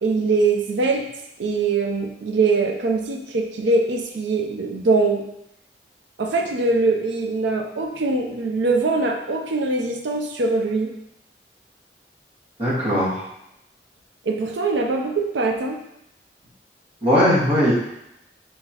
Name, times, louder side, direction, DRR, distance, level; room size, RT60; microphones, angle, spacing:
voice 1, 0.0-1.1 1.4-5.3 6.2-10.9 14.3-15.8, right 3 dB, 90° right, 3 dB, 0.5 m, -22 dB
voice 2, 12.6-13.2 17.0-17.7, equal, 35° right, -8 dB, 1.6 m, -19 dB
4.0 x 3.9 x 2.9 m, 0.82 s
head